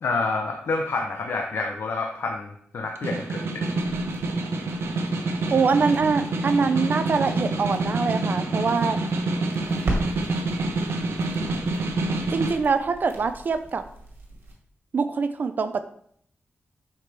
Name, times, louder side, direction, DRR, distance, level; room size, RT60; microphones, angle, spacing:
voice 1, 0.0-3.6, left 3 dB, 75° left, 2 dB, 0.8 m, -28 dB
Snare drum, 2.8-12.6, right 2 dB, 85° right, 0.9 m, -27 dB
sound 1, 3.5-14.5, right 2 dB, 65° right, 2.0 m, -38 dB
voice 2, 5.5-9.0 12.3-13.8 14.9-15.8, right 5 dB, 50° right, 9 dB, 0.6 m, -24 dB
7.7 x 5.8 x 3.4 m, 0.64 s
wide cardioid pair, 165°, 4 cm